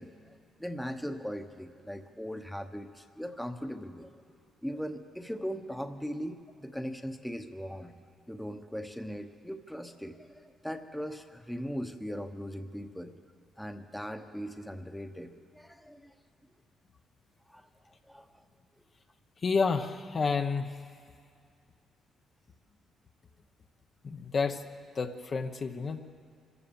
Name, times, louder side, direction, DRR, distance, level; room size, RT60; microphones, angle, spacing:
voice 1, 0.0-7.9 8.3-13.1 13.6-16.1 17.5-18.3, equal, 5° left, 7 dB, 1.1 m, -39 dB
voice 2, 19.4-20.7 24.0-24.6 24.9-26.0, left 5 dB, 40° left, 6 dB, 0.9 m, -30 dB
25.5 x 15.0 x 7.2 m, 2.2 s
cardioid pair, 105°, 0 cm